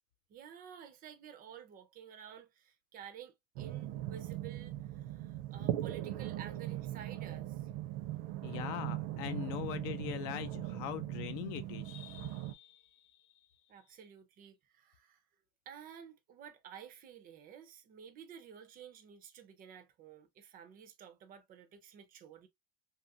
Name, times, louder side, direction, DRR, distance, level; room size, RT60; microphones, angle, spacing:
voice 1, 0.3-7.7 13.7-15.2 15.7-22.5, right 8 dB, 30° right, 0.3 m, -52 dB
sound 1, 3.6-12.5, right 14 dB, 80° right, 0.6 m, -39 dB
voice 2, 8.4-12.8, left 13 dB, 85° left, 0.5 m, -41 dB
2.9 x 2.4 x 2.5 m
cardioid pair, 175°, 33 cm